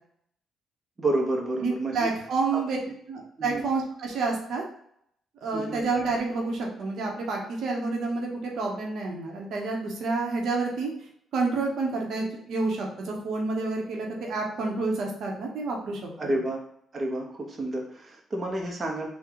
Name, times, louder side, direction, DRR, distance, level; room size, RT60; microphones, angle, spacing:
voice 1, 1.0-2.1 2.5-2.9 3.4-3.7 5.5-5.8 16.2-16.6 16.9-19.1, right 1 dB, 35° right, 0 dB, 0.8 m, -30 dB
voice 2, 1.6-2.8 3.1-4.6 5.4-10.9 11.3-16.3, right 3 dB, 70° right, 0 dB, 0.9 m, -29 dB
3.7 x 2.3 x 4.5 m, 0.70 s
cardioid pair, 90°, 0 cm